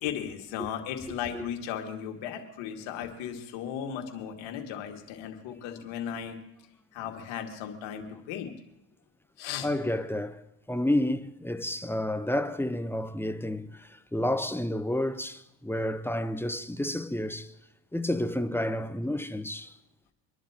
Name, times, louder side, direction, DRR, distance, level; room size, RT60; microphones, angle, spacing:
voice 1, 0.0-6.4 6.9-8.5 9.4-9.7, left 9 dB, 70° left, 2.2 m, -36 dB
voice 2, 1.1-1.5 9.6-17.5 17.9-19.7, left 1 dB, 5° left, 0.8 m, -30 dB
25.5 x 11.0 x 2.9 m
hypercardioid pair, 75°, 48 cm